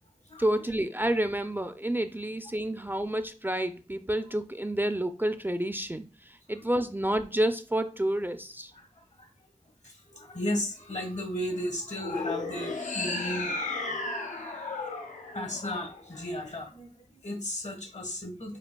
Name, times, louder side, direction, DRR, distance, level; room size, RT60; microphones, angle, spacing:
voice 1, 0.4-8.7, right 1 dB, 15° right, 8 dB, 0.4 m, -29 dB
voice 2, 8.7-9.3 9.8-13.5 15.3-18.6, left 1 dB, 65° left, 4 dB, 1.4 m, -35 dB
sound 1, 11.9-16.3, left 3 dB, 85° left, 0.7 m, -34 dB
6.6 x 2.5 x 2.2 m, 0.34 s
wide cardioid pair, 40°, 13 cm